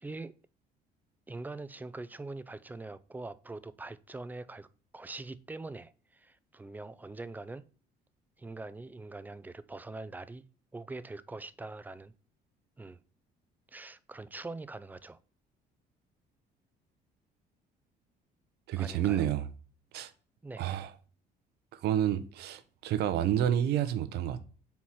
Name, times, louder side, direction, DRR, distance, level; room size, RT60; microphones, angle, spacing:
voice 1, 0.0-0.3 1.3-4.7 4.9-7.7 8.4-10.4 10.7-12.1 12.8-13.0 13.7-15.2 18.8-19.3 20.4-20.7, right 2 dB, 10° right, 0.4 m, -43 dB
voice 2, 18.7-19.5 19.9-20.1 20.6-20.9 21.7-24.4, right 10 dB, 75° right, 0.7 m, -29 dB
4.6 x 4.3 x 5.5 m
cardioid pair, 110°, 17 cm